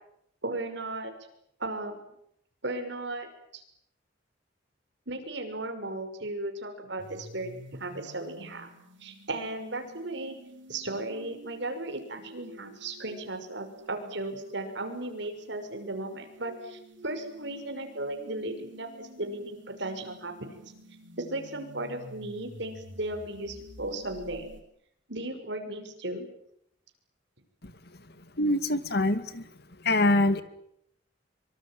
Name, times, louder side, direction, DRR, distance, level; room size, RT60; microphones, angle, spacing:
voice 1, 0.4-1.1 1.6-2.0 2.6-3.3 3.5-3.6 5.1-8.7 9.0-10.4 10.7-20.5 21.2-24.5 25.1-26.3, right 2 dB, 65° right, 6 dB, 6.0 m, -36 dB
sound 1, 7.0-24.6, equal, 80° right, 7.2 m, -50 dB
voice 2, 28.4-29.5 29.8-30.4, left 2 dB, 55° left, 11 dB, 2.2 m, -24 dB
25.5 x 24.5 x 9.2 m, 0.75 s
head